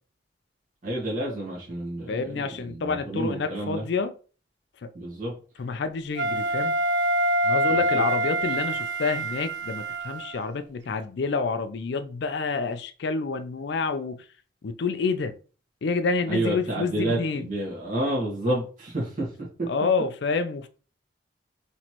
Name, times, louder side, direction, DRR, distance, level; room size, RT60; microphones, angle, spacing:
voice 1, 0.8-3.8 4.9-5.3 7.7-8.0 16.3-19.5, right 1 dB, 40° right, 1.6 m, -30 dB
voice 2, 2.1-4.1 4.8-4.9 5.6-6.7 7.4-14.3 14.6-15.4 15.8-17.5 19.7-20.7, left 4 dB, 60° left, 0.4 m, -28 dB
Wind instrument woodwind instrument, 6.2-10.5, right 1 dB, 60° right, 0.5 m, -25 dB
4.2 x 3.1 x 2.9 m
head